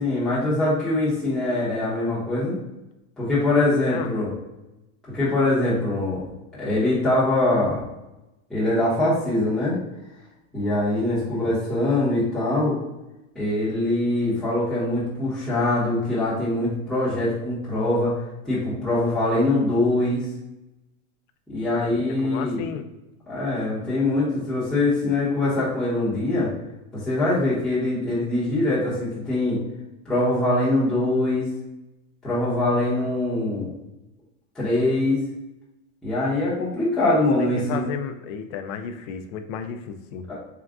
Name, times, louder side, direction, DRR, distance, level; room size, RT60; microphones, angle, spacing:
voice 1, 0.0-2.6 3.2-4.3 5.1-6.2 6.6-7.8 8.5-9.8 10.5-12.8 13.3-18.1 18.4-20.3 21.5-22.6 23.3-26.5 26.9-29.6 30.0-31.5 32.2-33.7 34.5-35.2 36.0-37.8 40.3-40.4, left 2 dB, ahead, -12 dB, 0.9 m, -23 dB
voice 2, 21.8-22.9 37.0-40.3, left 7 dB, 65° left, 8 dB, 0.6 m, -33 dB
3.7 x 2.3 x 3.5 m, 0.97 s
supercardioid pair, 155°, 42 cm